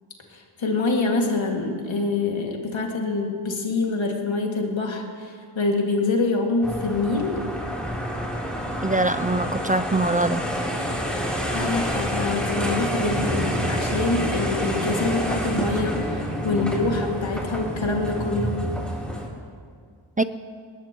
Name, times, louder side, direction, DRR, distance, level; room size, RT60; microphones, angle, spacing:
voice 1, 0.3-7.4 11.5-18.6, left 3 dB, 80° left, 1 dB, 2.3 m, -25 dB
sound 1, 6.6-19.3, equal, ahead, 3.5 m, -28 dB
voice 2, 8.8-10.4 20.2-20.3, right 2 dB, 20° right, 11 dB, 0.5 m, -23 dB
19.5 x 19.0 x 3.1 m, 2.1 s
cardioid pair, 60°, 46 cm